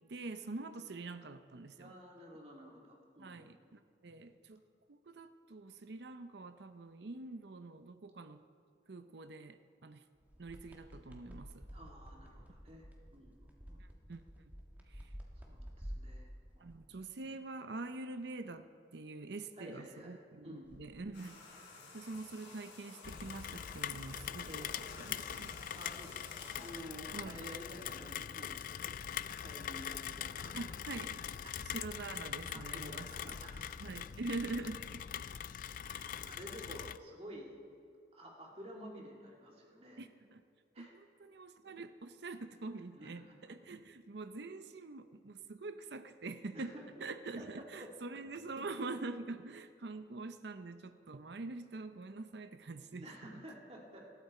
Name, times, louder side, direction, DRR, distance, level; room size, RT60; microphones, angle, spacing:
voice 1, 0.1-1.9 3.2-4.6 4.9-8.4 8.9-10.0 10.4-11.7 13.8-14.2 14.9-15.1 16.6-21.4 21.9-24.7 25.0-25.5 27.1-27.4 30.5-31.3 31.6-33.4 33.8-35.0 40.0-40.4 40.8-46.7 47.0-53.1, right 3 dB, 65° right, 10 dB, 0.6 m, -45 dB
voice 2, 1.8-3.5 11.7-12.9 13.1-13.8 15.4-16.3 16.5-16.7 19.6-20.7 24.4-24.7 25.7-29.0 29.3-30.7 31.4-31.6 32.5-33.9 35.7-37.5 38.1-40.0 40.7-40.9 42.9-43.3 46.5-47.0 47.4-47.9 52.9-54.1, equal, 35° right, -1 dB, 2.4 m, -52 dB
sound 1, 10.2-16.8 20.6-21.0, equal, 10° right, 1.5 m, -50 dB
sound 2, 21.1-26.7, left 3 dB, 65° left, 4.2 m, -53 dB
Rain, 23.0-37.0, left 9 dB, 45° left, 0.3 m, -43 dB
20.0 x 13.5 x 4.3 m, 2.4 s
head